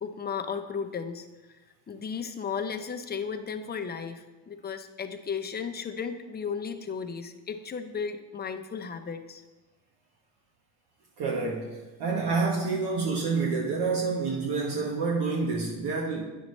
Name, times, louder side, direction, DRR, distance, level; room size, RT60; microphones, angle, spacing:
voice 1, 0.0-1.6 1.9-9.4, left 6 dB, 20° left, 6 dB, 0.7 m, -35 dB
voice 2, 11.2-16.3, right 4 dB, 60° right, -2 dB, 1.2 m, -28 dB
9.2 x 6.3 x 3.2 m, 1.2 s
supercardioid pair, 95°, 45 cm